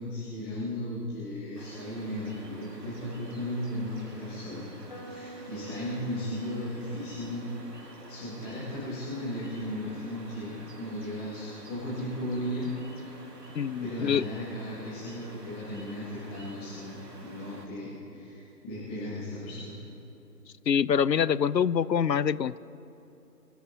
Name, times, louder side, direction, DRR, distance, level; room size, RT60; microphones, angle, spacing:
voice 1, 0.0-4.7 4.9-7.5 8.1-12.7 13.8-19.7, left 1 dB, 10° left, -13 dB, 1.7 m, -36 dB
sound 1, 1.5-17.7, right 2 dB, 70° right, 2.7 m, -49 dB
sound 2, 4.9-10.7, right 1 dB, 35° left, 3.7 m, -49 dB
voice 2, 13.5-14.2 20.7-22.6, left 7 dB, 85° left, 19 dB, 0.6 m, -25 dB
25.0 x 14.0 x 2.8 m, 2.9 s
figure-of-eight pair, 155°, 49 cm